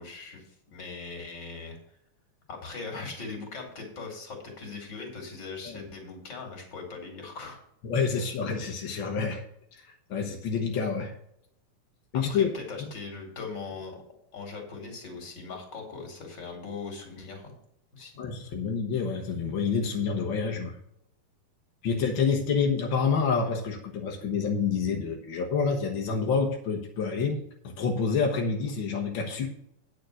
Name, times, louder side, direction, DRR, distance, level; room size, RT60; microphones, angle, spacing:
voice 1, 0.0-1.8 2.5-7.6 12.1-14.0 14.3-17.6 17.9-18.1, left 4 dB, 35° left, 2 dB, 2.9 m, -40 dB
voice 2, 7.8-9.4 9.7-11.1 12.1-12.5 12.8-12.9 18.2-20.8 21.8-29.5, left 5 dB, 65° left, 2 dB, 1.2 m, -28 dB
9.2 x 6.0 x 6.4 m, 0.73 s
omnidirectional pair, 3.8 m